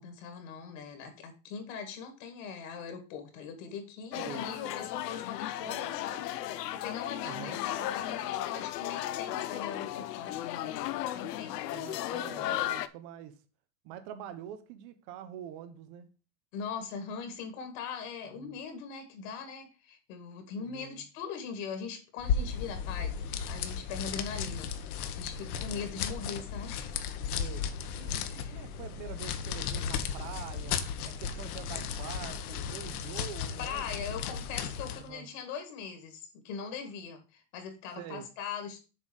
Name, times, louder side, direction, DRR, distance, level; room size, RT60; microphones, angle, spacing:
voice 1, 0.0-10.8 11.1-11.5 16.5-24.7 25.2-26.9 28.1-28.6 33.6-38.8, left 6 dB, 55° left, 2.0 m, -41 dB
sound 1, 4.1-12.9, left 13 dB, 90° left, 0.8 m, -35 dB
voice 2, 4.1-4.5 7.2-7.6 11.7-13.4 13.8-16.1 18.3-18.6 20.6-21.0 25.5-25.9 27.4-27.6 27.9-30.8 31.0-34.1 34.9-35.3 38.0-38.3, right 10 dB, 20° right, 0.3 m, -45 dB
sound 2, 22.2-35.1, left 7 dB, 70° left, 1.2 m, -35 dB
7.2 x 4.0 x 6.2 m
supercardioid pair, 160°, 47 cm